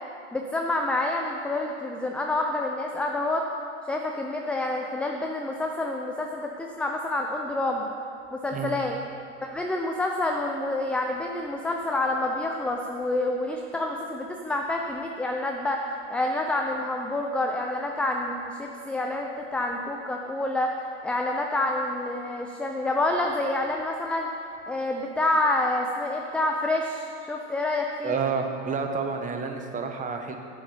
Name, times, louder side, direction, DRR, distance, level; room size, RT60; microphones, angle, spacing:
voice 1, 0.3-3.5 3.9-7.9 8.3-9.0 9.4-15.8 16.1-20.7 21.0-24.3 24.7-28.1, left 2 dB, 5° left, 1 dB, 0.3 m, -28 dB
voice 2, 28.0-30.4, right 5 dB, 20° right, 4 dB, 1.0 m, -29 dB
7.7 x 7.0 x 7.0 m, 2.4 s
hypercardioid pair, 105°, 38 cm